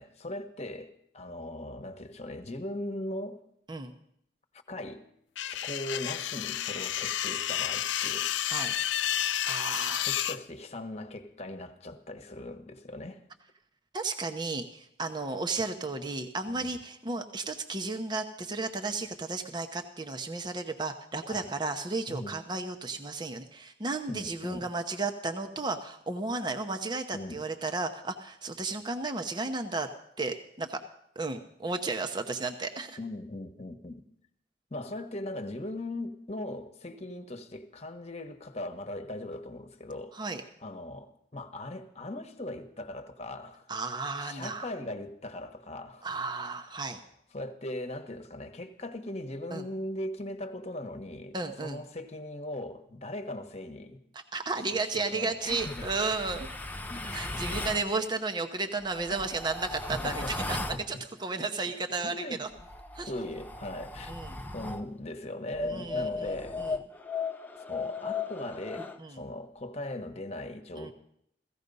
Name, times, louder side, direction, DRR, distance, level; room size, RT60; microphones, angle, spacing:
voice 1, 0.0-3.4 4.7-5.0 5.4-8.3 10.0-13.2 16.5-16.8 21.3-21.5 22.1-22.3 24.1-24.7 27.1-27.4 33.0-34.0 34.7-43.7 44.2-46.1 47.3-54.0 54.8-55.8 56.3-56.4 56.9-57.2 59.1-59.3 59.9-61.0 61.4-61.5 62.0-62.4 63.1-64.2 64.5-66.6 67.6-70.9, left 1 dB, 35° left, 1.3 m, -39 dB
sound 1, 5.4-10.4, left 11 dB, 80° left, 0.5 m, -31 dB
voice 2, 9.5-10.1 13.9-29.9 30.2-30.8 31.2-33.0 40.1-40.4 43.7-44.7 46.0-47.0 49.5-49.6 51.3-51.8 54.1-56.5 57.1-62.5 62.9-63.1 64.1-64.4 65.6-66.7 69.0-69.2 70.8-70.9, right 3 dB, 25° right, 0.9 m, -33 dB
sound 2, 55.5-57.8 58.8-60.9 62.5-64.9 65.5-69.0, left 3 dB, 10° left, 0.7 m, -36 dB
16.5 x 15.0 x 5.4 m
head